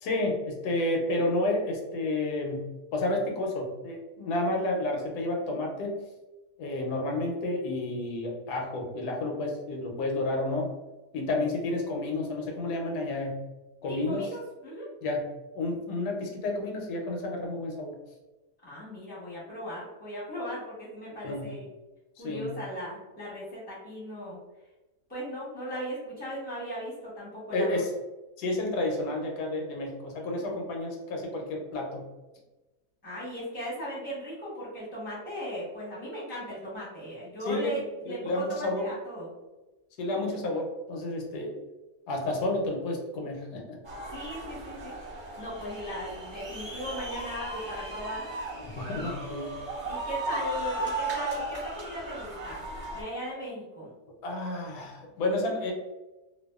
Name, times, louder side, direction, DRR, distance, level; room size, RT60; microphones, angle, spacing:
voice 1, 0.0-6.0 6.6-10.7 11.1-13.4 13.8-14.3 15.0-15.3 15.5-18.0 21.2-21.5 22.2-22.5 27.5-27.9 28.4-32.1 37.5-38.9 40.0-41.5 42.1-43.8 48.6-49.6 54.2-55.7, left 2 dB, 85° left, 1 dB, 1.1 m, -31 dB
voice 2, 13.9-14.9 18.6-21.7 22.2-24.4 25.1-27.8 33.0-39.3 44.1-44.9 45.4-48.2 49.8-52.6 52.9-53.9, equal, 10° left, -7 dB, 0.7 m, -37 dB
sound 1, 43.8-53.0, right 2 dB, 30° right, 0.5 m, -36 dB
2.6 x 2.3 x 2.2 m, 1.1 s
omnidirectional pair, 1.6 m